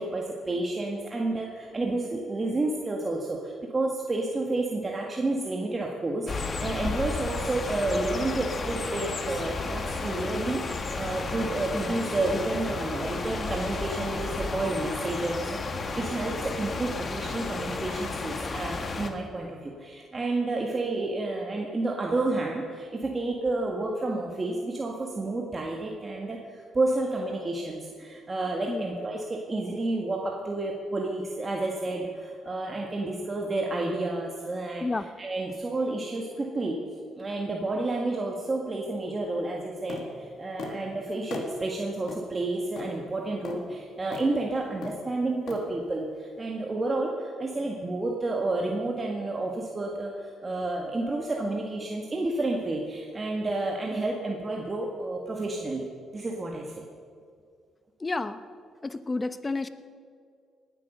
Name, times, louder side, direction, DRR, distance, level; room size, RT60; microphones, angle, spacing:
voice 1, 0.0-36.8 37.2-55.9 56.1-56.9, right 2 dB, 30° right, 0 dB, 1.7 m, -30 dB
sound 1, 6.3-19.1, left 4 dB, 40° left, 1.4 m, -33 dB
sound 2, 39.9-40.1 40.6-40.8 41.3-41.5 42.1-42.2 42.8-42.9 43.4-43.6 44.1-44.3 44.8-45.0 45.5-45.6, left 4 dB, 70° left, 2.1 m, -37 dB
voice 2, 58.0-58.4 58.8-59.7, left 3 dB, 25° left, 12 dB, 0.8 m, -30 dB
19.0 x 9.1 x 6.6 m, 2.2 s
cardioid pair, 90°, 0 cm